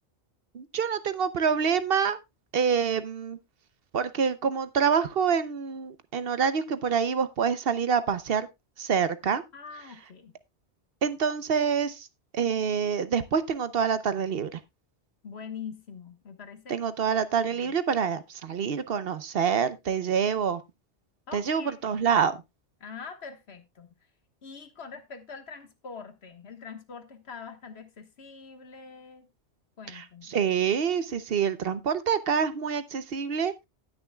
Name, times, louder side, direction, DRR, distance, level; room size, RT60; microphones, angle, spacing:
voice 1, 0.5-2.2 2.5-3.4 3.9-8.5 8.8-9.4 11.0-12.1 12.3-14.6 16.7-20.6 21.3-22.4 29.9-33.6, right 7 dB, 60° right, 0.9 m, -26 dB
voice 2, 9.5-10.3 15.2-16.8 17.5-17.8 21.3-21.9 22.8-23.9 24.4-29.3 29.8-30.3, left 6 dB, 70° left, 1.6 m, -44 dB
18.5 x 6.2 x 2.2 m
omnidirectional pair, 1.1 m